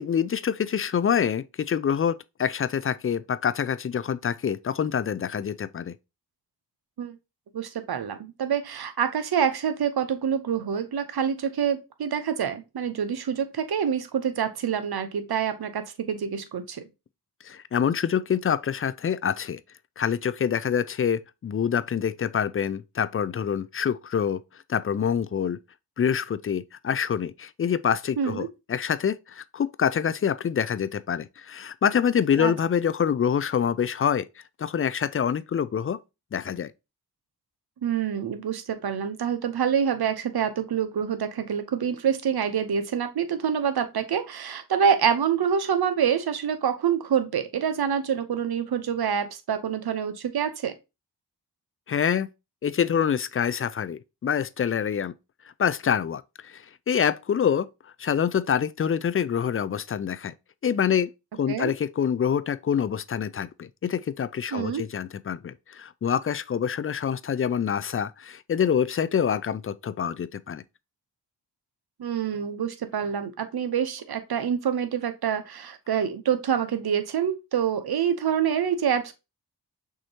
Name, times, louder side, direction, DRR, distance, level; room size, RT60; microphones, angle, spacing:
voice 1, 0.0-5.9 17.4-19.6 20.0-24.4 24.7-25.6 26.0-34.3 34.6-36.0 36.3-36.7 51.9-52.3 52.6-55.1 55.6-57.7 58.0-60.3 60.6-61.1 61.4-70.6, left 8 dB, 35° left, 0.4 m, -26 dB
voice 2, 7.5-16.9 28.2-28.5 32.4-32.5 37.8-50.7 61.5-61.7 64.5-64.8 72.0-79.1, right 8 dB, 60° right, 0.8 m, -26 dB
6.3 x 2.7 x 2.8 m
cardioid pair, 45°, 42 cm